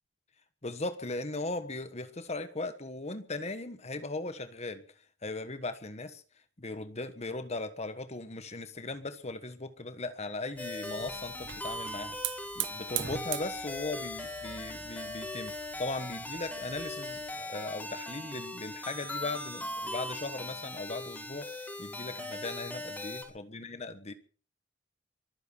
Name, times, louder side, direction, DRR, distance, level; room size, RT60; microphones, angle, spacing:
voice 1, 0.6-4.8 5.2-6.2 6.6-12.1 12.5-24.1, left 2 dB, 35° left, 1.3 m, -38 dB
sound 1, 10.6-23.2, left 2 dB, 10° left, 4.6 m, -39 dB
Hiss / Fire, 10.6-17.4, right 12 dB, 65° right, 0.8 m, -42 dB
24.0 x 9.4 x 6.1 m
head